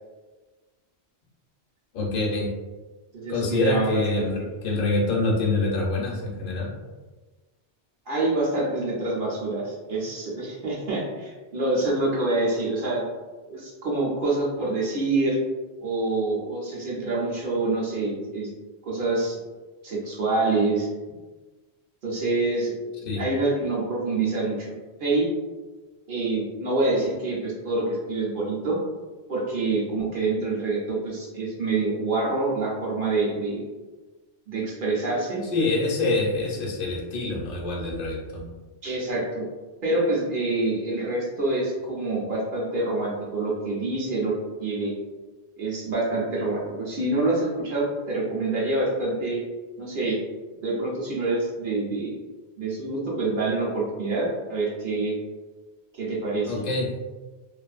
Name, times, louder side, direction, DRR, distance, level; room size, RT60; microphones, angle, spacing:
voice 1, 1.9-2.5 3.3-6.7 23.1-23.2 35.5-38.5 56.5-56.9, left 2 dB, 60° left, -1 dB, 0.7 m, -25 dB
voice 2, 3.1-4.3 8.1-13.0 13.5-15.4 15.8-18.5 18.8-19.4 19.8-20.9 22.0-22.7 23.2-24.7 25.0-25.3 26.1-28.8 29.3-33.6 34.5-35.4 38.8-39.5 39.8-44.3 44.6-44.9 45.6-49.4 49.8-50.2 50.6-52.1 52.6-55.2 55.9-56.5, right 2 dB, 60° right, -5 dB, 0.8 m, -26 dB
2.5 x 2.4 x 2.4 m, 1.3 s
omnidirectional pair, 1.1 m